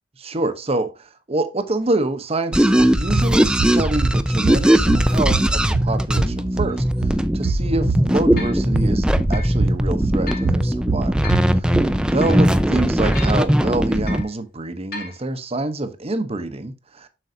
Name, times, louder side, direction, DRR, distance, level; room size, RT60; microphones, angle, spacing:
voice 1, 0.2-11.1 12.1-17.1, right 2 dB, 35° right, 0.9 m, -26 dB
sound 1, 2.5-14.2, equal, 5° right, 0.5 m, -19 dB
sound 2, 2.8-11.9, right 5 dB, 85° right, 0.6 m, -27 dB
sound 3, 6.7-6.8 7.4-7.5 8.4-8.6 9.3-9.6 10.3-10.5 11.2-11.5 12.2-12.5 13.1-13.5 14.1-14.3 14.9-15.2, left 3 dB, 55° left, 2.0 m, -35 dB
7.7 x 6.2 x 2.7 m
head